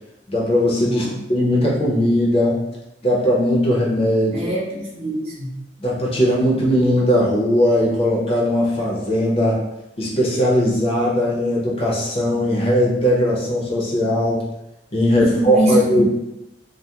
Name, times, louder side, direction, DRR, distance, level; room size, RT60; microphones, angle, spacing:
voice 1, 0.3-2.6 3.0-4.5 5.8-9.6 10.0-14.4 14.9-16.0, equal, 35° left, -5 dB, 0.6 m, -19 dB
voice 2, 0.8-1.2 4.3-5.5 15.1-16.0, equal, 35° right, -5 dB, 0.7 m, -23 dB
2.3 x 2.0 x 2.8 m, 0.89 s
head